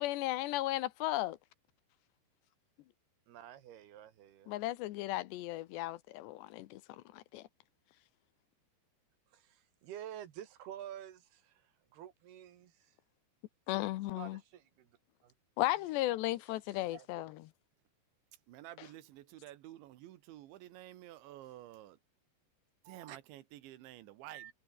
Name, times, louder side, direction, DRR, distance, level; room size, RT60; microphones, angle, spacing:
voice 1, 0.0-1.4 4.5-7.5 13.7-14.4 15.6-17.4 18.8-18.9, left 16 dB, 80° left, 3.0 m, -35 dB
voice 2, 3.3-4.5 9.3-11.6 11.9-12.9 14.1-14.9 15.2-15.3 16.9-17.1 22.9-23.2 24.3-24.5, right 11 dB, 65° right, 3.5 m, -49 dB
voice 3, 18.5-22.0 22.9-24.5, right 14 dB, 90° right, 3.7 m, -51 dB
omnidirectional pair, 5.2 m